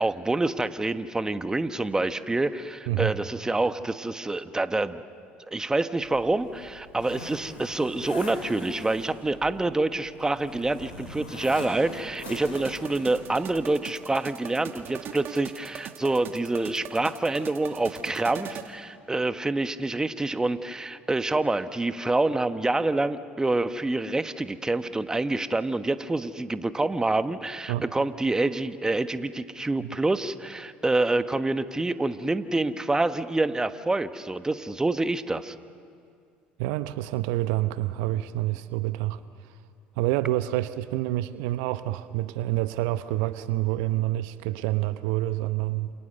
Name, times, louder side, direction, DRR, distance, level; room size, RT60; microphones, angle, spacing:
voice 1, 0.0-5.0 5.5-35.5, right 2 dB, 15° right, 11 dB, 1.3 m, -27 dB
Zipper (clothing), 6.0-13.4, left 2 dB, 85° left, 6.2 m, -42 dB
sound 1, 12.3-18.7, right 9 dB, 55° right, 2.1 m, -41 dB
voice 2, 36.6-39.2 40.0-45.9, right 16 dB, 70° right, 13 dB, 0.9 m, -27 dB
29.0 x 28.5 x 6.8 m, 2.3 s
hypercardioid pair, 65°, 5 cm